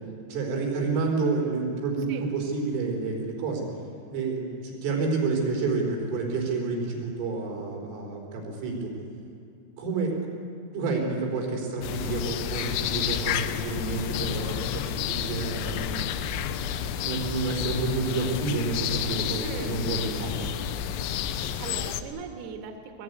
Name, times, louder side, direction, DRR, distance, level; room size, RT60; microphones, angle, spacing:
voice 1, 0.2-3.7 4.1-8.9 9.8-10.3 10.7-16.0 16.4-20.5, right 3 dB, 85° right, 1 dB, 6.7 m, -29 dB
sound 1, 11.8-22.0, left 9 dB, 80° left, 3.0 m, -30 dB
voice 2, 19.4-19.8 21.1-23.0, right 6 dB, 65° right, 4 dB, 3.1 m, -39 dB
22.5 x 20.5 x 9.4 m, 2.5 s
omnidirectional pair, 5.6 m